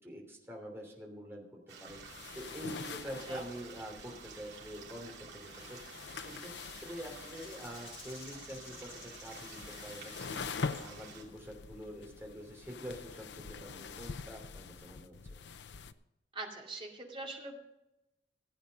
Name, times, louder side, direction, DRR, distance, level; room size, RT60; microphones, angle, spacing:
voice 1, 0.0-6.5 6.8-15.1, equal, 15° right, 0 dB, 3.0 m, -46 dB
sound 1, 1.7-11.2, right 5 dB, 70° right, 2.9 m, -51 dB
sound 2, 1.9-15.9, left 5 dB, 70° left, 0.6 m, -45 dB
Rattle (instrument), 7.3-11.1, left 5 dB, 35° left, 2.4 m, -54 dB
voice 2, 16.3-17.6, right 2 dB, 30° right, 0 dB, 2.4 m, -42 dB
15.5 x 8.5 x 5.3 m, 0.91 s
head